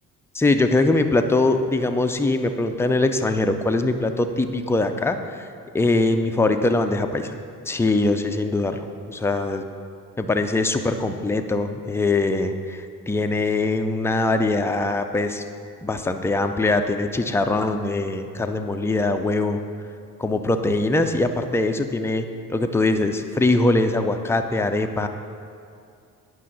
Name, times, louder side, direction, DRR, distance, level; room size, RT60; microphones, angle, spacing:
voice 1, 0.3-5.2 5.7-7.4 7.7-8.8 9.1-9.6 10.2-15.4 15.8-19.6 20.2-25.1, left 2 dB, 5° left, 7 dB, 0.3 m, -22 dB
9.5 x 5.6 x 4.0 m, 2.4 s
figure-of-eight pair, 45°, 48 cm